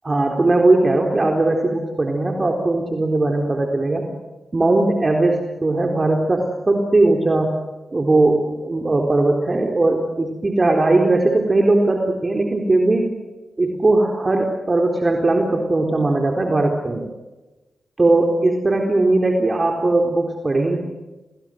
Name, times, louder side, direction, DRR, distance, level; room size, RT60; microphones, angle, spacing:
voice 1, 0.0-4.1 4.5-7.5 7.9-13.1 13.6-17.1 18.0-20.8, right 2 dB, 40° right, 2 dB, 3.9 m, -19 dB
28.0 x 20.0 x 7.7 m, 1.1 s
supercardioid pair, 40°, 0 cm